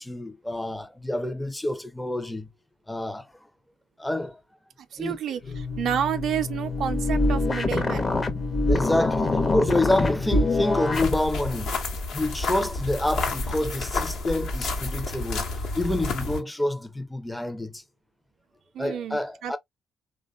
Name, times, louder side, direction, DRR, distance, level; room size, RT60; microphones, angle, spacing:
voice 1, 0.0-2.5 2.9-3.3 4.0-4.4 5.0-5.2 8.7-11.7 12.1-15.5 15.8-17.8 18.8-19.6, left 1 dB, 10° left, 0.5 m, -27 dB
voice 2, 4.9-8.1 18.7-19.6, right 9 dB, 70° right, 0.3 m, -30 dB
sound 1, 5.4-11.1, left 2 dB, 40° left, 0.7 m, -25 dB
sound 2, 10.9-16.4, left 3 dB, 70° left, 0.9 m, -30 dB
3.3 x 2.2 x 2.3 m
supercardioid pair, 60°, 0 cm